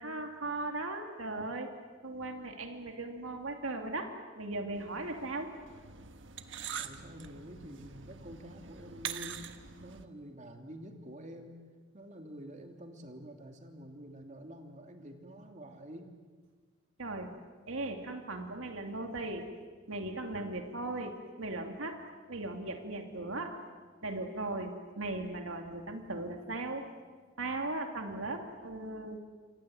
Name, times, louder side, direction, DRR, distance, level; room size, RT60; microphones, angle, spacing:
voice 1, 0.0-1.8 2.0-5.5 17.0-17.3 17.7-19.5 19.9-22.0 22.3-23.6 24.0-26.9 27.4-29.2, right 2 dB, 90° right, 4 dB, 2.6 m, -38 dB
sound 1, 4.7-10.0, right 8 dB, 65° right, 1.4 m, -44 dB
voice 2, 6.8-11.6 11.9-16.2, equal, 35° right, 4 dB, 2.8 m, -48 dB
29.0 x 25.0 x 7.8 m, 1.5 s
head